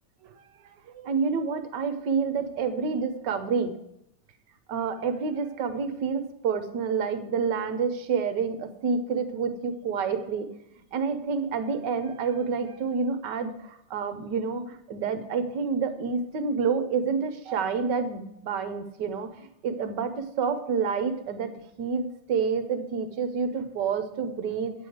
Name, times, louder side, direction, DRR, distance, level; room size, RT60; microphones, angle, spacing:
voice 1, 0.9-3.7 4.7-10.5 10.9-21.5 21.8-24.7, right 5 dB, 65° right, 10 dB, 1.2 m, -28 dB
9.1 x 5.1 x 7.8 m, 0.78 s
omnidirectional pair, 2.4 m